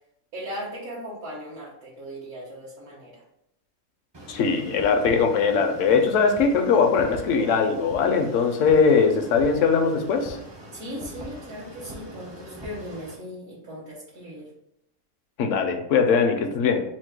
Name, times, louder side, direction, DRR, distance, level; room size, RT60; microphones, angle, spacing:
voice 1, 0.3-3.2 10.7-14.5, equal, 70° right, -8 dB, 1.5 m, -38 dB
sound 1, 4.1-13.1, equal, 35° right, 0.4 m, -42 dB
voice 2, 4.3-10.4 15.4-16.8, left 5 dB, 70° left, 6 dB, 0.9 m, -21 dB
4.4 x 2.1 x 4.4 m, 0.80 s
omnidirectional pair, 1.5 m